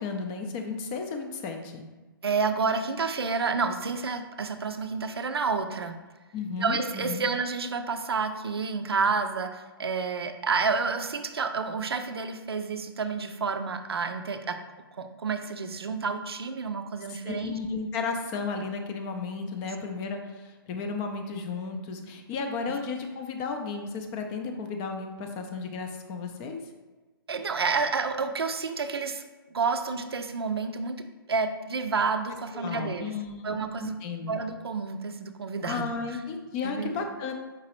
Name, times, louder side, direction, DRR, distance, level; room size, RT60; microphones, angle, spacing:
voice 1, 0.0-1.8 6.3-7.3 17.2-26.6 32.5-34.3 35.6-37.3, left 4 dB, 20° left, 4 dB, 0.4 m, -34 dB
voice 2, 2.2-6.0 6.6-14.6 15.0-17.6 27.3-29.2 29.5-33.1 33.4-34.0 34.3-35.9 36.6-37.1, right 4 dB, 90° right, 8 dB, 0.4 m, -29 dB
4.8 x 3.0 x 2.9 m, 1.2 s
hypercardioid pair, 140°, 13 cm